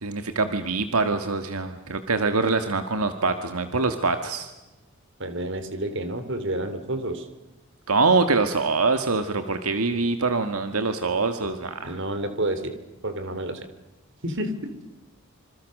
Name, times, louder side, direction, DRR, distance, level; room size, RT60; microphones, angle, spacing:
voice 1, 0.0-4.5 7.9-12.0, right 3 dB, 85° right, 8 dB, 1.7 m, -24 dB
voice 2, 5.2-7.3 11.8-12.7 13.0-13.7 14.2-14.7, right 1 dB, 55° right, 10 dB, 3.3 m, -29 dB
27.0 x 26.0 x 6.5 m, 1.1 s
head